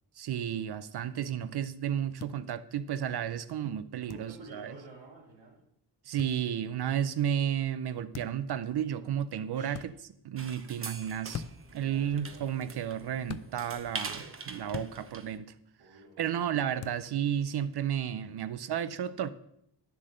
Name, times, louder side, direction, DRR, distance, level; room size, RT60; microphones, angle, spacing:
voice 1, 0.2-4.8 6.0-9.9 10.2-11.4 11.7-15.5 16.2-19.3, right 9 dB, 70° right, 0.6 m, -32 dB
sound 1, 2.2-2.3 4.1-4.3 6.2-6.3 8.1-8.4 9.7-9.9 11.3-11.7 13.3-13.5 14.7-14.9 16.8-17.0, left 7 dB, 40° left, 0.5 m, -40 dB
voice 2, 4.0-5.6 9.5-9.8 11.7-13.3 15.8-16.4, right 2 dB, 85° right, 3.0 m, -52 dB
sound 2, 10.4-15.4, right 4 dB, 30° right, 0.9 m, -43 dB
9.6 x 7.5 x 6.5 m
wide cardioid pair, 155°, 41 cm